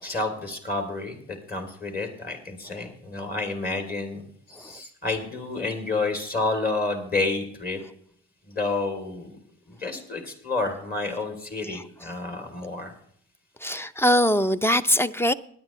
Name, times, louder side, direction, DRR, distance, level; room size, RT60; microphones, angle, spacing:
voice 1, 0.0-1.2 1.5-4.2 4.6-7.8 8.5-9.4 9.7-12.9, left 3 dB, 30° left, 2.9 m, -29 dB
voice 2, 13.6-15.3, equal, 10° left, 0.6 m, -22 dB
19.0 x 10.0 x 3.1 m
cardioid pair, 90°, 30 cm